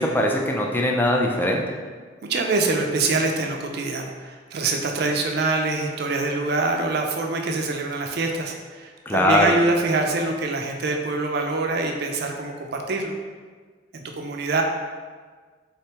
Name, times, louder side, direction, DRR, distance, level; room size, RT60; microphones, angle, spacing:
voice 1, 0.0-1.6 9.1-9.5, left 1 dB, 10° left, 0 dB, 0.3 m, -21 dB
voice 2, 2.3-13.2 13.9-14.6, right 3 dB, 55° right, 3 dB, 0.4 m, -25 dB
3.7 x 3.3 x 2.8 m, 1.5 s
head